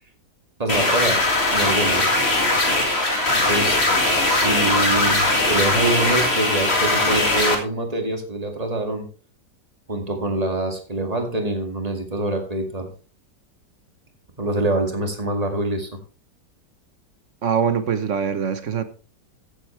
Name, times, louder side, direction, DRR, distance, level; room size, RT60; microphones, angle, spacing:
voice 1, 0.6-1.2 1.5-2.1 3.3-3.8 4.2-9.1 9.9-12.9 14.4-15.9, right 2 dB, 20° right, 2.2 m, -25 dB
sound 1, 0.7-7.5, left 2 dB, 35° left, 2.4 m, -20 dB
voice 2, 17.4-18.8, right 7 dB, 50° right, 1.2 m, -23 dB
15.5 x 8.0 x 3.3 m
omnidirectional pair, 1.9 m